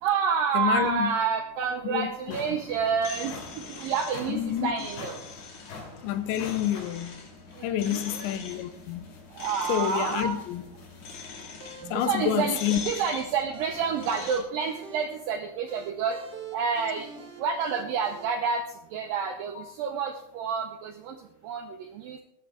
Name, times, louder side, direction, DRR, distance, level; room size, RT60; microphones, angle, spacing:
voice 1, 0.0-3.3 3.7-5.2 7.6-8.3 9.4-10.4 11.9-16.2 16.5-17.1 17.4-18.6 18.9-21.1 21.4-22.2, right 6 dB, 80° right, 2.0 m, -29 dB
voice 2, 0.5-1.1 1.8-2.4 4.3-4.7 6.0-7.3 7.6-9.1 9.7-10.6 11.9-12.8, left 11 dB, 90° left, 3.1 m, -28 dB
sound 1, 1.5-1.6 2.0-11.3, left 4 dB, 70° left, 4.5 m, -47 dB
sound 2, 2.7-14.4, left 5 dB, 50° left, 2.9 m, -43 dB
sound 3, 9.9-18.2, right 4 dB, 65° right, 1.0 m, -46 dB
20.0 x 9.1 x 3.5 m
omnidirectional pair, 5.1 m